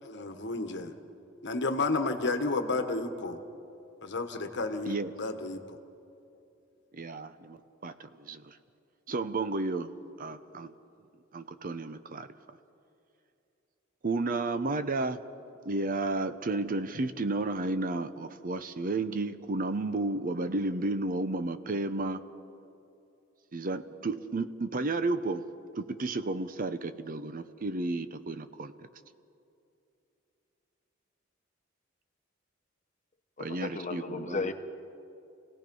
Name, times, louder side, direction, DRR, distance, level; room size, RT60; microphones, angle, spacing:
voice 1, 0.0-0.9 1.4-3.4 4.0-5.8, left 3 dB, 60° left, 7 dB, 1.4 m, -31 dB
voice 2, 6.9-8.6 9.1-9.9 10.2-10.7 11.3-12.3 14.0-15.2 15.6-22.2 23.5-25.5 25.8-28.9 33.4-34.5, right 2 dB, 45° right, 11 dB, 0.7 m, -32 dB
voice 3, 33.4-34.5, left 3 dB, 35° left, 7 dB, 1.1 m, -34 dB
27.5 x 17.5 x 5.4 m, 2.7 s
head